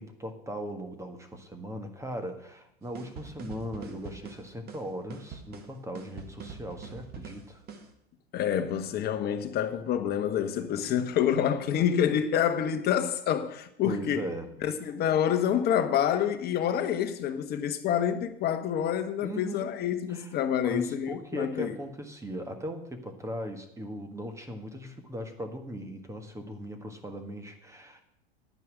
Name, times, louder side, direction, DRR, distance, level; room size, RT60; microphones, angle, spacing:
voice 1, 0.0-7.6 13.8-14.5 19.2-19.7 20.1-20.3 20.6-28.0, equal, 10° right, 1.5 m, -38 dB
sound 1, 2.9-7.9, right 5 dB, 30° right, 1.7 m, -44 dB
voice 2, 8.3-14.2 14.6-21.8, left 9 dB, 30° left, 1.3 m, -27 dB
10.5 x 9.2 x 6.3 m
figure-of-eight pair, 95°, 32 cm